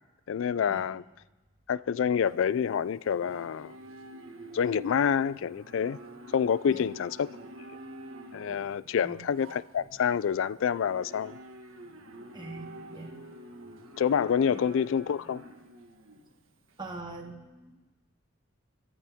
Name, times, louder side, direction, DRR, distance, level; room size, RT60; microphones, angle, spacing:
voice 1, 0.3-1.0 1.7-3.8 4.5-6.0 6.3-7.3 8.3-11.4 14.0-15.4, left 7 dB, 70° left, 0.3 m, -27 dB
Livestock farm animals working animals, 2.2-16.9, right 1 dB, 85° right, 1.6 m, -48 dB
voice 2, 12.3-13.1 14.5-14.6 16.8-17.8, right 2 dB, 20° right, 1.5 m, -43 dB
21.5 x 13.0 x 3.6 m
head